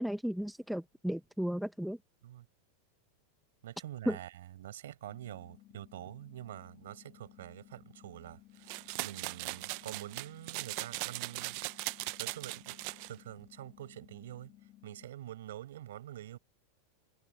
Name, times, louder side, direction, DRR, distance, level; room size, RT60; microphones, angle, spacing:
voice 1, 0.0-2.0 4.1-4.2, equal, ahead, 0.8 m, -34 dB
voice 2, 3.6-11.6 12.2-14.5 14.8-16.4, right 13 dB, 80° right, 6.6 m, -46 dB
sound 1, 5.1-15.1, left 15 dB, 40° left, 5.9 m, -59 dB
sound 2, 8.7-13.1, right 27 dB, 55° right, 0.4 m, -39 dB
supercardioid pair, 130°, 0 cm